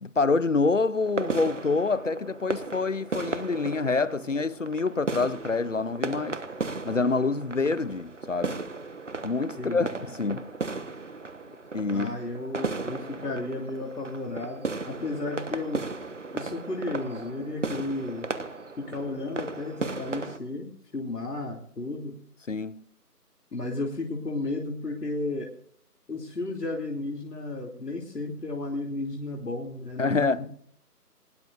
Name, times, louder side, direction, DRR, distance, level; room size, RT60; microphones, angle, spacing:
voice 1, 0.0-6.4 6.9-8.6 9.2-10.5 11.7-12.1 22.5-22.8 30.0-30.4, left 3 dB, 50° left, 0.7 m, -26 dB
sound 1, 1.0-20.4, right 3 dB, 50° right, 1.2 m, -36 dB
voice 2, 11.9-15.8 16.3-18.3 18.8-22.2 23.5-25.5 26.1-30.5, left 2 dB, 80° left, 2.9 m, -33 dB
20.5 x 19.0 x 2.5 m
figure-of-eight pair, 170°, 47 cm